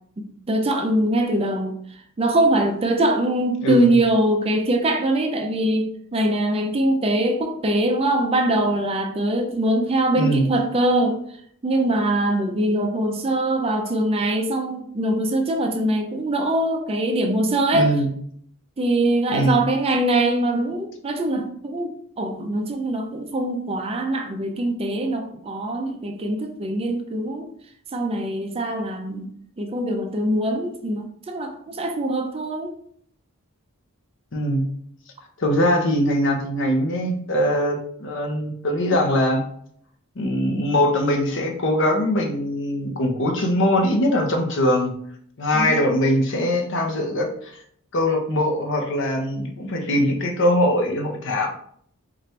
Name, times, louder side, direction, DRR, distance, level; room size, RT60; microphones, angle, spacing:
voice 1, 0.5-11.2 11.6-17.9 18.8-27.5 27.9-29.3 29.6-32.7 45.5-45.8, right 1 dB, 25° right, 4 dB, 0.4 m, -23 dB
voice 2, 3.6-3.9 10.1-10.5 17.7-18.1 19.3-19.6 34.3-34.7 35.4-39.4 40.2-44.9 45.4-47.6 47.9-51.5, left 1 dB, 55° left, 3 dB, 0.7 m, -22 dB
4.2 x 2.5 x 3.2 m, 0.64 s
head